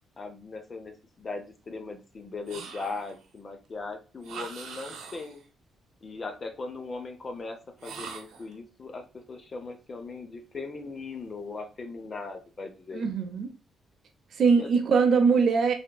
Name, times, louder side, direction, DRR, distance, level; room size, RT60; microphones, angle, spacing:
voice 1, 0.2-5.4 6.0-13.0 14.6-14.7, left 3 dB, 30° left, 6 dB, 0.5 m, -39 dB
sound 1, 2.5-3.2 4.2-5.4 7.8-8.5, right 5 dB, 90° right, 0.6 m, -42 dB
voice 2, 12.9-13.5 14.4-15.7, right 5 dB, 50° right, 6 dB, 0.5 m, -22 dB
3.4 x 2.8 x 2.2 m, 0.31 s
cardioid pair, 155°, 0 cm